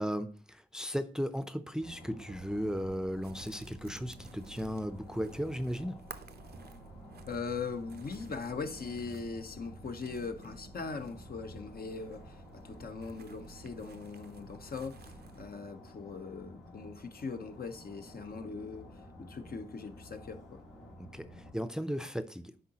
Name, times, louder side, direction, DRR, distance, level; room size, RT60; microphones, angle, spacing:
voice 1, 0.0-6.0 21.0-22.5, equal, 5° right, 0.5 m, -36 dB
sound 1, 1.8-21.5, left 1 dB, 80° left, 1.7 m, -52 dB
sound 2, 2.3-15.5, right 6 dB, 60° right, 0.5 m, -53 dB
voice 2, 7.3-20.6, left 4 dB, 55° left, 0.8 m, -40 dB
10.0 x 3.8 x 2.9 m
cardioid pair, 45°, 18 cm